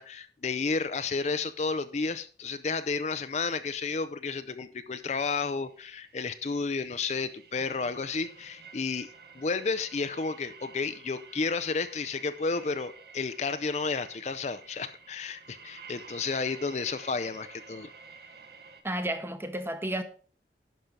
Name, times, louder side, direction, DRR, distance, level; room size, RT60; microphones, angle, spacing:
voice 1, 0.0-17.9, left 4 dB, 40° left, 0.5 m, -32 dB
sound 1, 5.7-18.8, right 4 dB, 60° right, 1.2 m, -51 dB
voice 2, 18.8-20.0, right 1 dB, 15° right, 0.9 m, -32 dB
11.0 x 6.0 x 5.1 m
head